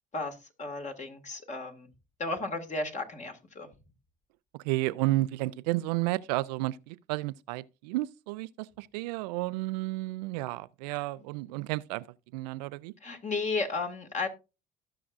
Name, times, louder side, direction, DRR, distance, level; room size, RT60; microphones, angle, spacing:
voice 1, 0.1-1.9 2.2-3.7 10.9-11.0 13.0-14.3, left 3 dB, 35° left, 2.2 m, -34 dB
voice 2, 4.6-12.0 12.3-12.9, right 19 dB, 85° right, 0.5 m, -32 dB
17.5 x 5.9 x 2.5 m
supercardioid pair, 70°, 20 cm